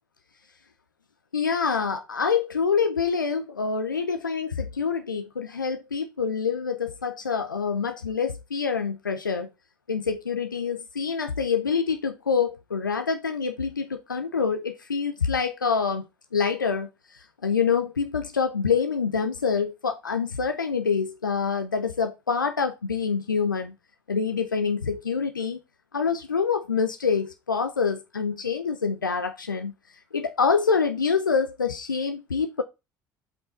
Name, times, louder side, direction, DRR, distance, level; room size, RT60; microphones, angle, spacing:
voice 1, 1.3-9.5 9.9-16.1 16.3-23.7 24.1-25.6 25.9-29.7 30.1-32.6, left 5 dB, 90° left, 0.6 m, -26 dB
7.7 x 5.5 x 4.1 m
figure-of-eight pair, 60°, 10 cm